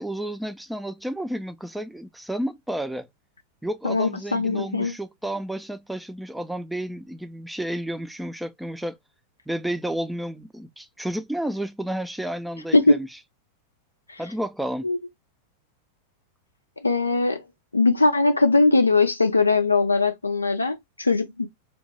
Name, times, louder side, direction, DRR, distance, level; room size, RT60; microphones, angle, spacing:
voice 1, 0.0-3.1 3.6-9.0 9.5-13.1 14.2-14.9, right 1 dB, 5° right, 0.4 m, -31 dB
voice 2, 3.8-4.9 12.7-13.0 14.1-14.2 14.8-15.0 16.8-17.4 17.7-21.5, left 3 dB, 80° left, 0.3 m, -20 dB
2.8 x 2.1 x 2.8 m
figure-of-eight pair, 90°, 0 cm